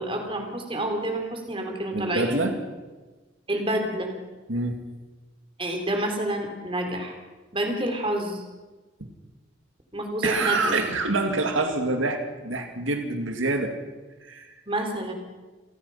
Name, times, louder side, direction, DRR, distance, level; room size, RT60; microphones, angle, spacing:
voice 1, 0.0-2.5 3.5-4.1 5.6-7.1 7.5-8.4 9.9-10.7 14.7-15.1, right 1 dB, 25° right, 4 dB, 3.8 m, -28 dB
voice 2, 1.9-2.6 4.5-4.8 10.2-13.7 14.3-14.5, right 2 dB, 85° right, 5 dB, 2.3 m, -26 dB
29.0 x 18.0 x 5.7 m, 1.2 s
head